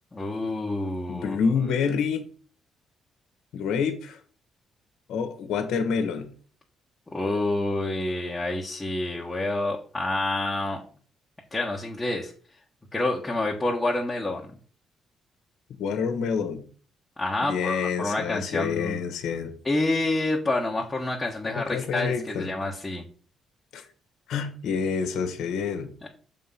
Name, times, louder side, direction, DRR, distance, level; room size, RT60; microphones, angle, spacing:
voice 1, 0.1-1.4 7.1-10.8 11.5-12.3 12.9-14.5 17.2-19.0 19.6-23.1 26.0-26.1, left 2 dB, 15° left, 1.3 m, -28 dB
voice 2, 1.1-2.3 3.5-4.2 5.1-6.3 15.8-16.6 17.5-19.5 21.4-22.5 23.7-23.8 24.3-25.9, left 6 dB, 80° left, 1.1 m, -27 dB
6.5 x 3.8 x 5.7 m
cardioid pair, 90°, 0 cm